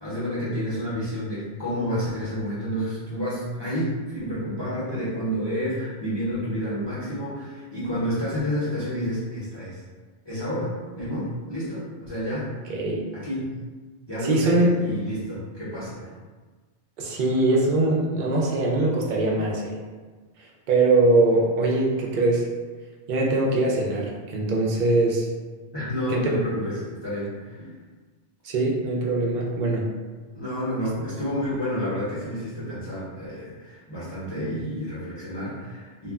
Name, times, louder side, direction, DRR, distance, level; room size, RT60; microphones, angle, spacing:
voice 1, 0.0-9.8 10.2-12.5 13.1-13.5 14.1-16.2 25.7-27.7 30.3-36.1, equal, 25° left, -11 dB, 0.7 m, -29 dB
voice 2, 12.7-13.1 14.2-14.8 17.0-19.8 20.7-22.5 23.1-25.3 26.1-26.3 28.4-29.9, right 2 dB, 55° right, -2 dB, 0.6 m, -22 dB
2.3 x 2.1 x 3.5 m, 1.4 s
omnidirectional pair, 1.2 m